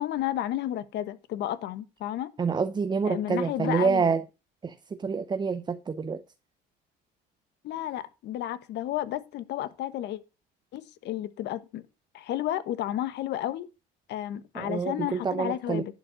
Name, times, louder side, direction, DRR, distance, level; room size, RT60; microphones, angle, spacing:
voice 1, 0.0-2.3 3.0-4.1 7.6-10.2 10.7-11.8 12.1-13.7 14.1-15.9, left 12 dB, 60° left, 1.2 m, -32 dB
voice 2, 2.4-4.2 4.6-6.2 14.5-15.8, right 5 dB, 20° right, 0.8 m, -27 dB
11.0 x 5.2 x 6.3 m
supercardioid pair, 100°, 20 cm